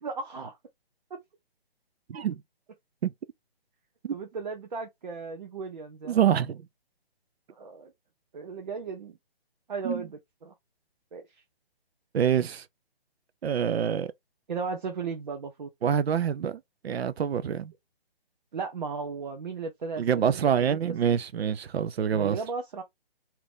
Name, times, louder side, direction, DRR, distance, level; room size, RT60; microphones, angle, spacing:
voice 1, 0.0-0.6 1.1-1.2 4.1-6.2 7.5-7.9 8.3-9.2 9.7-10.5 11.1-11.4 14.5-15.7 18.5-20.4 20.7-20.8 22.1-22.8, right 4 dB, 50° right, 0.7 m, -36 dB
voice 2, 2.1-2.4 3.0-3.1 4.0-4.1 6.1-6.6 9.8-10.0 12.1-12.7 13.4-14.1 15.8-17.7 20.0-22.4, right 8 dB, 90° right, 0.5 m, -26 dB
2.9 x 2.5 x 3.4 m
hypercardioid pair, 170°, 31 cm